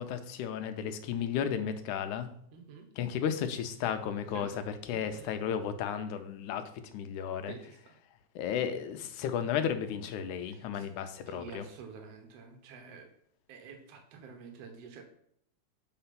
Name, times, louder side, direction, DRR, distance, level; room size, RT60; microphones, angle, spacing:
voice 1, 0.0-2.3 3.0-6.6 6.9-7.6 8.4-11.7, left 8 dB, 85° left, 9 dB, 2.2 m, -34 dB
voice 2, 2.5-2.9 4.3-4.6 4.9-5.3 7.5-8.0 10.4-10.9 11.3-13.1 13.5-15.0, right 6 dB, 60° right, 4 dB, 2.2 m, -49 dB
7.6 x 4.4 x 5.8 m, 0.69 s
omnidirectional pair, 3.4 m